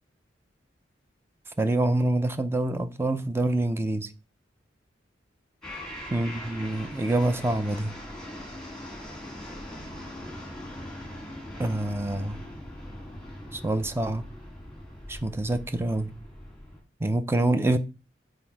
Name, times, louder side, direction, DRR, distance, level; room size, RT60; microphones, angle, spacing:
voice 1, 1.6-4.1 6.1-8.0 11.6-12.4 13.5-14.3 15.1-16.1 17.0-17.8, right 2 dB, 15° right, 0.4 m, -26 dB
sound 1, 5.6-16.8, left 1 dB, 5° left, 2.0 m, -41 dB
5.9 x 3.9 x 4.6 m
head